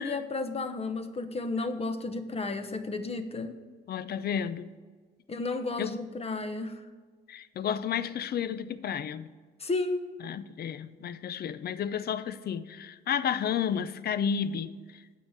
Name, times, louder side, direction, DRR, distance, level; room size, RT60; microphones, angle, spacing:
voice 1, 0.0-3.6 5.3-6.8 9.6-10.0, left 3 dB, 30° left, 1.1 m, -32 dB
voice 2, 3.9-4.7 5.8-6.0 7.3-9.3 10.2-14.7, left 8 dB, 55° left, 0.6 m, -32 dB
8.5 x 6.6 x 7.4 m
cardioid pair, 90°, 20 cm